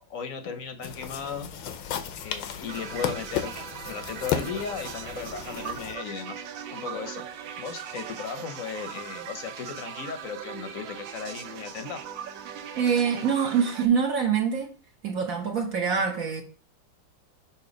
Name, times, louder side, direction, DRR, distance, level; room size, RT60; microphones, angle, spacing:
voice 1, 0.1-1.5 2.2-3.5 3.8-6.4 6.7-7.3 7.6-12.0, left 6 dB, 60° left, 0.9 m, -36 dB
sound 1, 0.8-5.9, left 9 dB, 90° left, 1.4 m, -34 dB
sound 2, 2.7-13.9, right 8 dB, 85° right, 1.4 m, -39 dB
voice 2, 12.8-14.7 15.0-16.4, right 6 dB, 55° right, 1.1 m, -25 dB
6.7 x 2.8 x 5.1 m
omnidirectional pair, 2.1 m